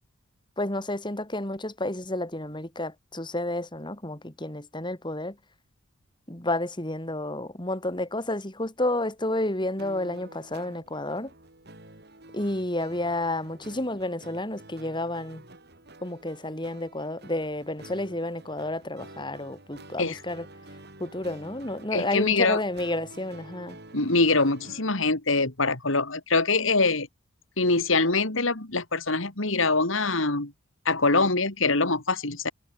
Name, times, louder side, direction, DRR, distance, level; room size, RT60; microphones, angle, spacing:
voice 1, 0.6-5.4 6.3-11.3 12.3-15.4 16.0-20.5 21.0-23.8, left 1 dB, 20° left, 3.1 m, -31 dB
sound 1, 9.8-25.0, right 2 dB, 50° right, 7.2 m, -49 dB
voice 2, 21.9-22.6 23.9-27.1 27.6-30.5 30.8-32.5, left 3 dB, 70° left, 3.0 m, -24 dB
head